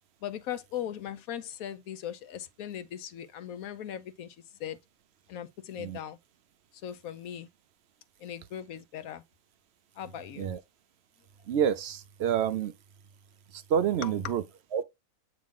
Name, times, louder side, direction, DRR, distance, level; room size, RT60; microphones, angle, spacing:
voice 1, 0.2-4.8 5.3-6.2 6.8-7.5 8.2-9.2 9.9-10.5 14.0-14.3, left 10 dB, 75° left, 1.2 m, -39 dB
voice 2, 11.5-12.7 13.5-14.4 14.7-14.8, right 8 dB, 65° right, 0.7 m, -28 dB
8.4 x 3.1 x 3.6 m
omnidirectional pair, 1.5 m